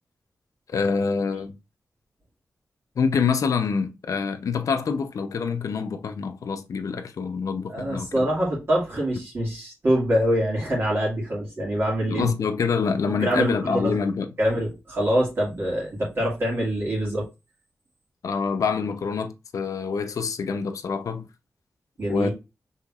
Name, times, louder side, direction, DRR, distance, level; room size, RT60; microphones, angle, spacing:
voice 1, 0.7-1.6 3.0-8.3 12.1-14.3 18.2-21.3 22.1-22.3, left 5 dB, 75° left, 0.6 m, -26 dB
voice 2, 7.7-12.3 13.2-14.0 14.4-17.3 22.0-22.3, equal, 45° right, 2.0 m, -24 dB
5.6 x 3.7 x 2.4 m
wide cardioid pair, 125°, 6 cm